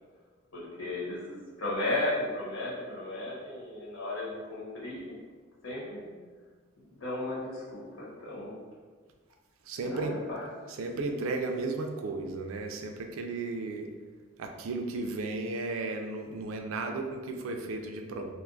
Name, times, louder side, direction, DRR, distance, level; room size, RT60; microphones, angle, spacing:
voice 1, 0.5-5.2 5.6-6.1 7.0-8.5 9.8-10.4, left 2 dB, 85° left, -7 dB, 1.1 m, -35 dB
voice 2, 9.7-10.2 10.7-13.9 14.4-18.3, right 3 dB, 80° right, 4 dB, 0.4 m, -34 dB
2.5 x 2.3 x 3.7 m, 1.5 s
head